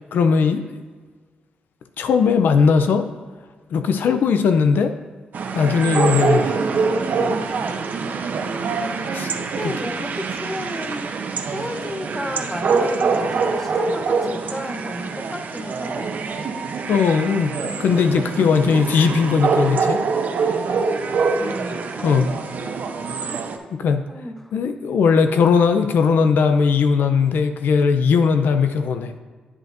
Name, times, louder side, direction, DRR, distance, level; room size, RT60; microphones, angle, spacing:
voice 1, 0.1-0.8 2.0-3.1 3.7-4.9 5.5-6.6 9.1-9.3 16.9-20.0 22.0-22.3 23.7-24.0 24.5-29.1, left 5 dB, 80° left, 8 dB, 0.5 m, -18 dB
sound 1, 5.3-23.6, right 4 dB, 65° right, 0.8 m, -24 dB
voice 2, 9.6-11.1 11.5-16.5 21.4-22.7 24.1-24.5, equal, 10° left, 5 dB, 0.8 m, -33 dB
9.8 x 7.7 x 2.6 m, 1.5 s
cardioid pair, 85°, 3 cm